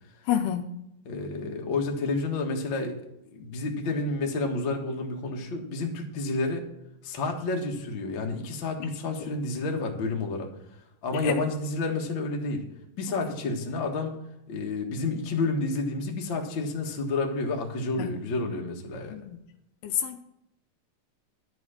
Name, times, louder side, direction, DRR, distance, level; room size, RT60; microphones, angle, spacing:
voice 1, 0.3-0.6 11.2-11.3 18.0-18.1 19.1-19.4 19.8-20.2, left 10 dB, 80° left, 8 dB, 2.4 m, -28 dB
voice 2, 1.0-3.0 3.3-6.6 7.0-10.5 11.0-12.6 13.0-14.1 14.5-19.2, left 3 dB, 65° left, 2 dB, 1.2 m, -30 dB
11.5 x 6.2 x 7.4 m, 0.82 s
omnidirectional pair, 4.9 m